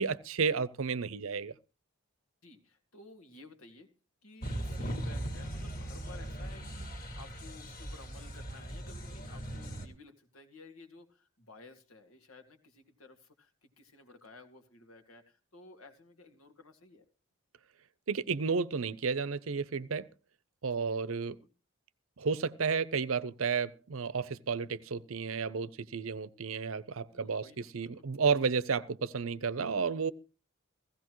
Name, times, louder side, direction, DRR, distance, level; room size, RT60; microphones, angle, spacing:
voice 1, 0.0-1.5 18.1-20.1 20.6-21.4 22.2-30.1, right 5 dB, 70° right, 0.7 m, -32 dB
voice 2, 2.4-3.9 4.2-17.0 20.7-21.1 21.4-21.5 27.1-28.1, left 2 dB, 85° left, 2.1 m, -55 dB
sound 1, 4.4-9.9, right 1 dB, 45° left, 2.1 m, -39 dB
16.0 x 16.0 x 3.1 m
head